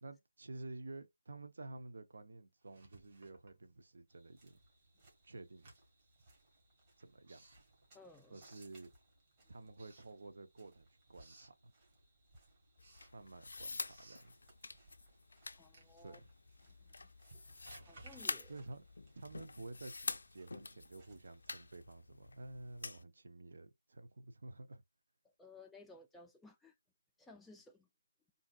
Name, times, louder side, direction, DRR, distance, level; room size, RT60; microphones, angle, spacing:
voice 1, 0.0-4.6 5.2-5.7 7.0-7.4 8.3-8.9 9.5-11.7 13.1-14.4 16.0-16.3 18.5-18.8 19.1-24.8, right 2 dB, 65° right, 0.7 m, -51 dB
Writing, 2.6-4.2 4.5-9.3 9.7-10.7 11.0-11.6 12.1-19.7, right 2 dB, 45° right, 1.6 m, -63 dB
sound 1, 4.1-21.7, right 1 dB, 25° right, 1.7 m, -69 dB
voice 2, 7.9-8.4 15.6-16.2 16.6-17.1 17.9-18.5 25.4-26.7 27.2-27.9, left 3 dB, 5° left, 0.4 m, -58 dB
sound 2, 12.8-23.0, left 3 dB, 70° left, 0.4 m, -47 dB
3.8 x 2.6 x 2.3 m
figure-of-eight pair, 160°, 0 cm